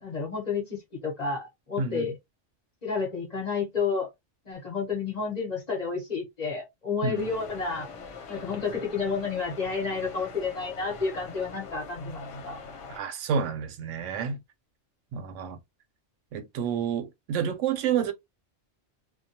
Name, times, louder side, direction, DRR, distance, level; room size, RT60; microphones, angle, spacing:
voice 1, 0.0-2.2 2.8-4.1 4.4-7.9 8.3-12.6, left 5 dB, 40° left, 0.9 m, -31 dB
voice 2, 1.8-2.1 7.0-7.3 12.9-14.4 15.1-15.6 16.3-18.1, right 7 dB, 80° right, 0.9 m, -29 dB
sound 1, 7.1-13.0, left 4 dB, 80° left, 1.1 m, -43 dB
2.3 x 2.2 x 2.7 m
omnidirectional pair, 1.2 m